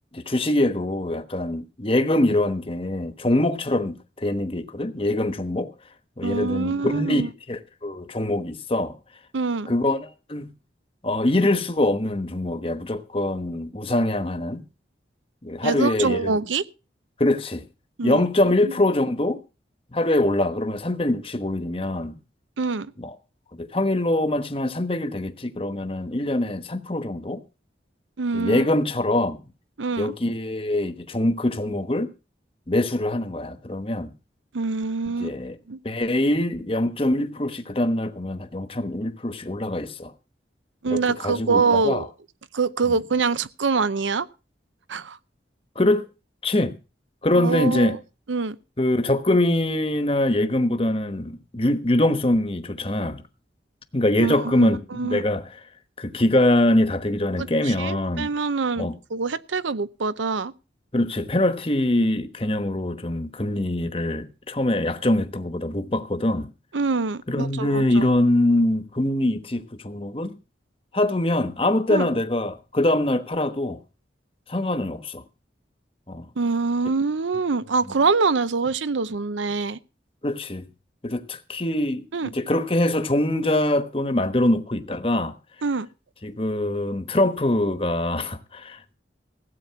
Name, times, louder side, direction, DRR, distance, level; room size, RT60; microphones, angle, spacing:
voice 1, 0.1-5.7 6.2-9.0 9.7-10.5 11.0-14.6 15.4-16.4 17.2-17.7 18.0-19.4 19.9-22.2 23.0-23.1 23.5-27.4 28.3-29.4 30.0-32.1 32.7-34.1 35.2-35.6 35.8-40.1 40.9-42.0 42.9-43.0 45.7-46.1 46.4-46.8 47.2-48.0 48.8-53.2 53.9-55.5 56.0-58.3 58.8-58.9 60.9-66.5 67.3-70.3 70.9-73.8 74.5-75.2 76.1-76.3 80.2-80.7 81.0-85.4 86.2-88.9, left 1 dB, 30° left, 1.1 m, -23 dB
voice 2, 6.2-7.3 9.3-9.7 15.6-16.6 18.0-18.2 18.6-18.7 22.6-22.9 28.2-28.6 29.8-30.1 34.5-35.4 35.7-35.8 40.8-42.1 42.5-44.3 44.9-45.2 47.3-48.0 48.3-48.6 54.2-55.2 57.4-60.5 66.7-68.1 71.9-72.1 76.4-79.8 82.1-82.3 85.6-85.9, right 4 dB, 90° right, 0.7 m, -25 dB
16.0 x 8.3 x 5.8 m
head